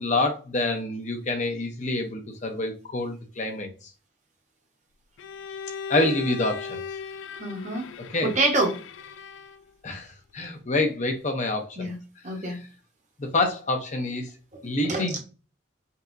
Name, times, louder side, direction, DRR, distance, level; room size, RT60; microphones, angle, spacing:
voice 1, 0.0-3.7 5.9-6.8 8.1-8.3 9.8-10.1 10.3-11.9 13.2-14.3 14.6-15.2, left 2 dB, 35° left, 0.7 m, -27 dB
Bowed string instrument, 5.2-9.7, left 6 dB, 70° left, 0.3 m, -37 dB
voice 2, 7.4-7.9 8.2-8.8 11.8-12.0 12.2-12.6 14.8-15.2, right 2 dB, 35° right, 1.0 m, -26 dB
5.4 x 2.7 x 2.6 m
head